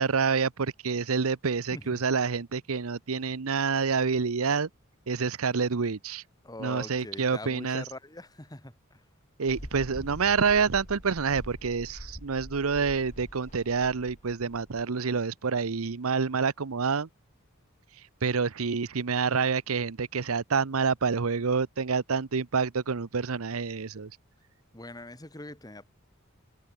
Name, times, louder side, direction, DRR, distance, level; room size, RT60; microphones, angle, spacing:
voice 1, 0.0-4.7 5.1-6.2 6.6-7.8 9.4-17.1 18.2-24.1, right 5 dB, 85° right, 0.8 m, -27 dB
voice 2, 1.7-2.0 6.4-9.0 24.7-25.8, left 1 dB, 20° left, 2.5 m, -43 dB
Mechanical fan, 9.5-14.9, equal, 35° left, 3.5 m, -44 dB
head